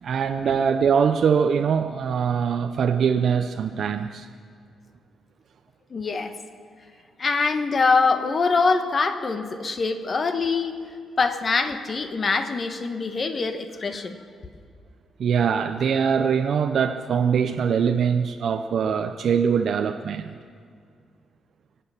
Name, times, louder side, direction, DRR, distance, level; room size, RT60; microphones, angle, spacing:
voice 1, 0.0-4.3 15.2-20.3, right 7 dB, 65° right, 6 dB, 0.6 m, -22 dB
voice 2, 5.9-6.3 7.2-10.8 11.2-14.2, left 4 dB, 40° left, 8 dB, 1.3 m, -24 dB
25.0 x 8.6 x 5.7 m, 2.2 s
cardioid pair, 105°, 0 cm